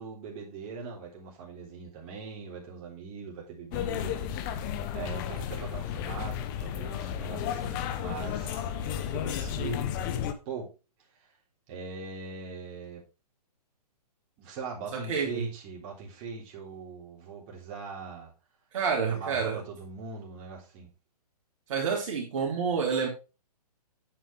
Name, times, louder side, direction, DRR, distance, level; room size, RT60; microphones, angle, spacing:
voice 1, 0.0-4.6 4.9-9.9 10.5-10.7 11.7-13.0 14.4-18.3 19.1-20.9, right 4 dB, 30° right, -2 dB, 3.5 m, -41 dB
sound 1, 3.7-10.3, left 9 dB, 30° left, 1.0 m, -33 dB
voice 2, 14.9-15.4 18.7-19.6 21.7-23.1, right 6 dB, 50° right, 0 dB, 2.9 m, -28 dB
8.8 x 7.5 x 3.4 m, 0.30 s
hypercardioid pair, 145°, 21 cm